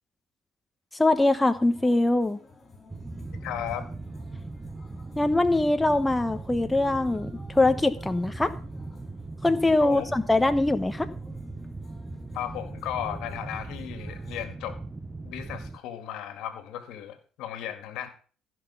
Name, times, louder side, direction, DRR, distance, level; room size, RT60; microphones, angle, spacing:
voice 1, 0.9-2.4 5.2-8.5 9.4-11.1, left 2 dB, 10° left, 9 dB, 1.0 m, -23 dB
sound 1, 1.1-14.4, left 4 dB, 35° left, 4.8 m, -53 dB
sound 2, 2.9-15.8, right 3 dB, 20° right, 0.8 m, -39 dB
voice 2, 3.4-3.9 9.8-10.1 12.3-14.8 15.2-18.1, left 11 dB, 75° left, 10 dB, 1.9 m, -35 dB
15.0 x 6.0 x 5.7 m, 0.41 s
supercardioid pair, 80°, 0 cm